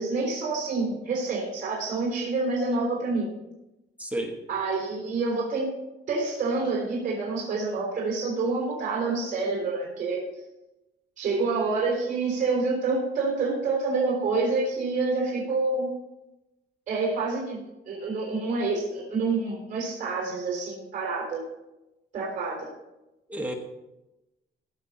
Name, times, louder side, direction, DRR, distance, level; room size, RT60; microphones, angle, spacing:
voice 1, 0.0-3.3 4.5-5.7 6.1-10.2 11.2-15.9 16.9-17.6 17.9-21.4 22.1-22.7, right 3 dB, 45° right, -4 dB, 4.0 m, -27 dB
voice 2, 4.0-4.4 23.3-23.5, right 1 dB, 5° right, 2 dB, 1.0 m, -31 dB
16.0 x 5.9 x 5.5 m, 0.98 s
cardioid pair, 160°, 19 cm